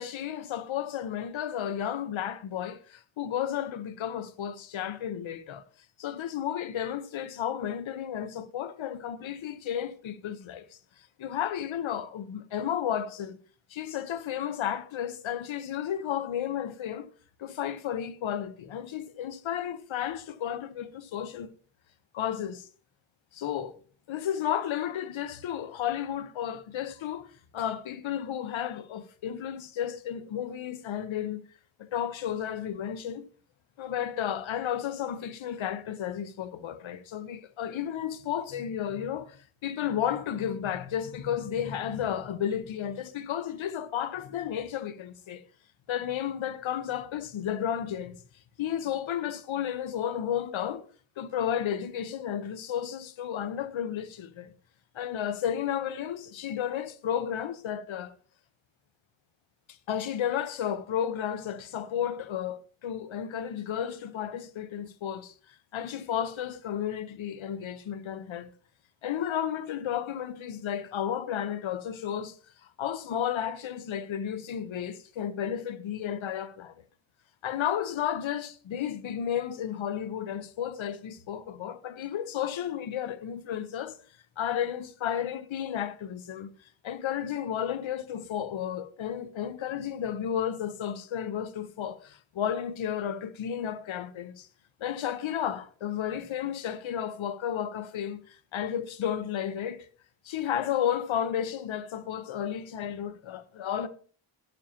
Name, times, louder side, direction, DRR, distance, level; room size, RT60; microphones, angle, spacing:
voice 1, 0.0-5.6 6.0-10.6 11.2-13.4 13.7-17.1 17.4-21.5 22.1-22.7 23.3-23.8 24.1-31.4 31.8-33.3 33.8-45.4 45.9-48.2 48.6-50.8 51.2-54.5 54.9-58.1 59.9-65.3 65.7-68.5 69.0-72.3 72.6-76.8 77.4-84.0 84.4-86.5 86.8-94.5 94.8-99.9 100.2-103.9, left 9 dB, 80° left, 0.9 m, -33 dB
12.0 x 10.5 x 2.9 m
wide cardioid pair, 105°, 46 cm